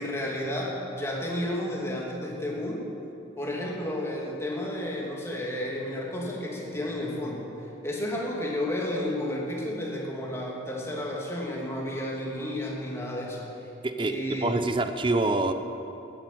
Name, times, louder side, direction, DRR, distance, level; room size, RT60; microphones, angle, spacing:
voice 1, 0.0-2.9 3.4-13.5 14.0-14.5, left 1 dB, 15° left, -3 dB, 2.4 m, -32 dB
voice 2, 13.8-15.5, right 2 dB, 25° right, 8 dB, 0.7 m, -26 dB
14.0 x 10.0 x 9.2 m, 2.8 s
head